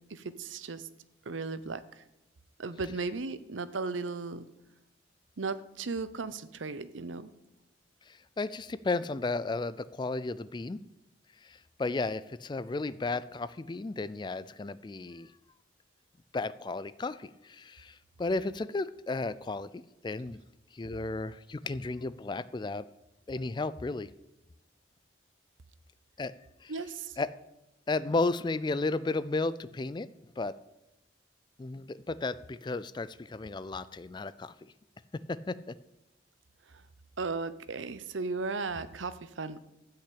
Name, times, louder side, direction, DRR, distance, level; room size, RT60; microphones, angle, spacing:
voice 1, 0.1-0.9 1.3-2.0 2.6-4.5 5.4-7.3 26.7-27.2 37.2-39.6, right 4 dB, 85° right, 14 dB, 0.7 m, -36 dB
voice 2, 8.1-10.8 11.4-15.3 16.3-20.4 20.7-22.8 23.3-24.1 26.2-26.3 26.6-26.7 27.2-27.3 27.9-30.1 30.4-30.5 31.6-34.7 35.3-35.8, left 3 dB, 25° left, 16 dB, 0.3 m, -34 dB
13.5 x 5.7 x 8.5 m, 0.93 s
head